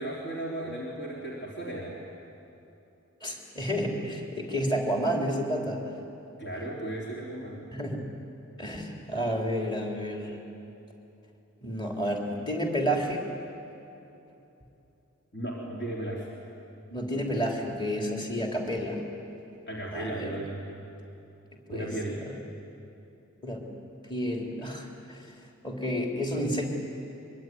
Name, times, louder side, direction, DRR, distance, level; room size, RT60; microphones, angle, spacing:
voice 1, 0.0-2.0 6.4-7.7 15.3-16.3 19.7-20.8 21.7-22.2, right 1 dB, 50° left, -4 dB, 3.7 m, -35 dB
voice 2, 3.2-5.8 7.7-8.0 8.6-10.4 11.6-13.2 16.9-19.0 19.9-20.4 21.7-22.4 23.4-23.6 24.1-25.2 25.6-26.7, equal, 20° left, 0 dB, 3.5 m, -30 dB
24.0 x 23.5 x 9.4 m, 2.9 s
head